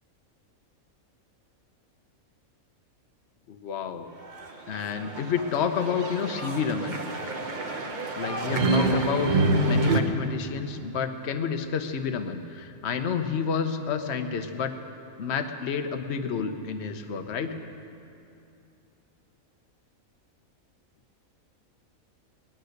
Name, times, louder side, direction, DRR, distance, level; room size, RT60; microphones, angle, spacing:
voice 1, 3.5-4.1 4.7-7.0 8.1-9.3 9.6-14.7 15.2-17.5, left 6 dB, 55° left, 6 dB, 1.1 m, -30 dB
sound 1, 4.3-10.0, right 2 dB, 35° right, 1.1 m, -27 dB
19.0 x 12.0 x 6.5 m, 2.7 s
omnidirectional pair, 1.5 m